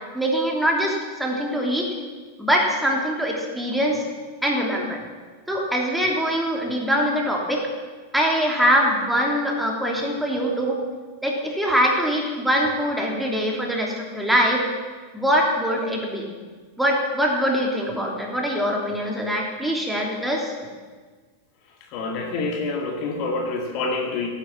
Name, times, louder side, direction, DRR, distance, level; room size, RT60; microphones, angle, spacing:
voice 1, 0.1-1.9 2.4-4.0 4.4-5.0 5.5-7.7 8.1-10.8 11.2-14.6 15.1-16.2 16.8-20.5, equal, 5° right, -1 dB, 3.2 m, -23 dB
voice 2, 21.9-24.3, left 3 dB, 40° left, 2 dB, 2.2 m, -27 dB
17.5 x 10.0 x 7.4 m, 1.4 s
figure-of-eight pair, 90°, 0 cm